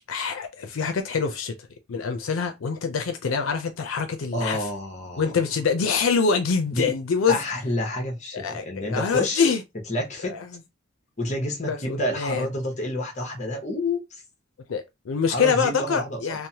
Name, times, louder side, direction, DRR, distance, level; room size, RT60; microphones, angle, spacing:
voice 1, 0.1-1.5 1.9-4.7 5.2-7.4 8.3-9.6 10.2-10.6 11.6-12.5 14.7-16.5, left 5 dB, 85° left, 0.5 m, -25 dB
voice 2, 4.3-5.2 6.7-6.9 7.3-9.5 9.9-10.4 11.2-14.0 15.3-16.4, left 1 dB, 35° left, 0.9 m, -29 dB
3.1 x 2.0 x 2.7 m
head